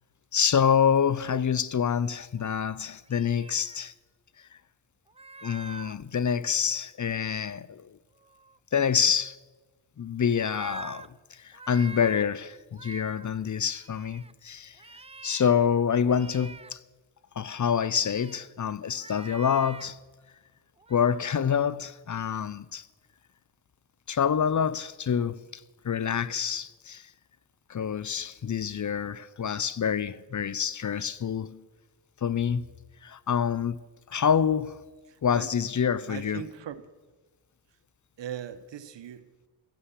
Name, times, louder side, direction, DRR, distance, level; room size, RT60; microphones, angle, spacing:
voice 1, 0.3-3.9 5.4-7.9 8.7-9.4 10.0-14.8 15.2-16.8 17.3-20.0 20.9-22.9 24.1-27.0 27.7-31.6 32.2-32.7 33.0-33.8 34.1-34.8 35.2-36.4, left 7 dB, 40° left, 0.7 m, -27 dB
sound 1, 2.4-2.6 3.1-3.9 5.1-6.0 8.2-8.6 10.4-11.1 11.5-12.2 12.7-13.3 13.7-14.3 14.8-15.7 16.1-16.7 18.0-18.4 18.9-19.9 20.8-21.2, right 3 dB, 15° right, 0.6 m, -45 dB
voice 2, 35.1-35.5 36.1-36.9 38.2-39.5, right 9 dB, 65° right, 1.2 m, -40 dB
15.0 x 9.9 x 8.2 m
supercardioid pair, 45°, 46 cm